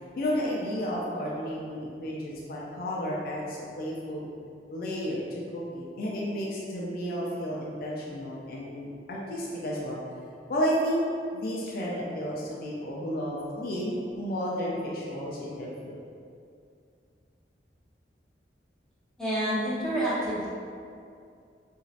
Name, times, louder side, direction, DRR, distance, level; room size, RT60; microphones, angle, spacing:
voice 1, 0.2-4.3 4.7-10.0 10.5-11.0 11.3-16.0, equal, 55° left, -4 dB, 0.4 m, -32 dB
voice 2, 19.2-20.5, right 1 dB, 5° left, -10 dB, 0.7 m, -28 dB
3.0 x 2.7 x 2.4 m, 2.4 s
head